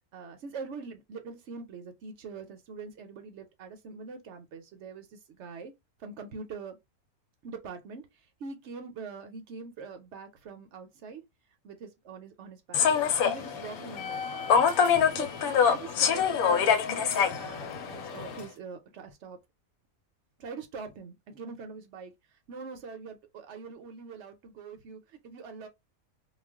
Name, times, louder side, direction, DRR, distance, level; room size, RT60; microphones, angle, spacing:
voice 1, 0.1-5.7 6.0-6.8 7.4-8.1 8.4-11.2 11.6-12.9 13.2-14.5 14.9-19.4 20.4-22.1 22.5-25.7, right 4 dB, 65° right, 0.8 m, -43 dB
Human voice / Subway metro underground, 12.7-18.4, left 7 dB, 85° left, 1.1 m, -25 dB
2.4 x 2.2 x 3.3 m
omnidirectional pair, 1.5 m